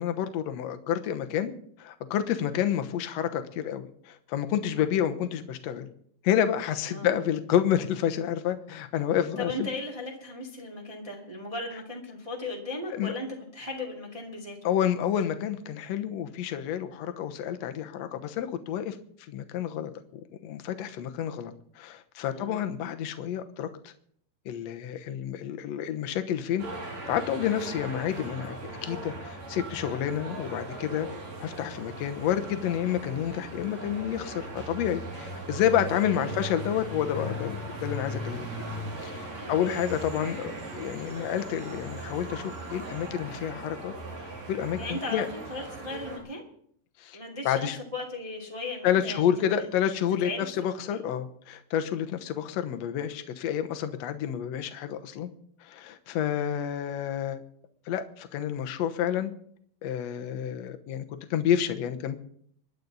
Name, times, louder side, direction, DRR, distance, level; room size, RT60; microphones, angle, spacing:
voice 1, 0.0-1.5 1.8-5.9 6.2-9.7 12.9-13.1 14.6-19.0 19.3-23.9 24.4-26.6 27.1-28.6 28.8-31.1 31.4-38.5 39.0-43.9 44.2-45.3 47.0-47.2 47.4-47.8 48.8-55.3 55.6-57.4 57.9-59.3 59.8-61.0 61.3-62.2, left 10 dB, 65° left, 8 dB, 1.8 m, -29 dB
voice 2, 9.4-13.3 13.5-14.7 22.3-22.6 36.1-36.3 39.4-39.9 44.8-46.4 47.1-49.7 50.2-51.0, left 2 dB, 10° right, -2 dB, 1.9 m, -37 dB
sound 1, 26.6-46.2, right 1 dB, 50° right, 4.5 m, -38 dB
25.5 x 11.0 x 4.1 m, 0.64 s
omnidirectional pair, 4.1 m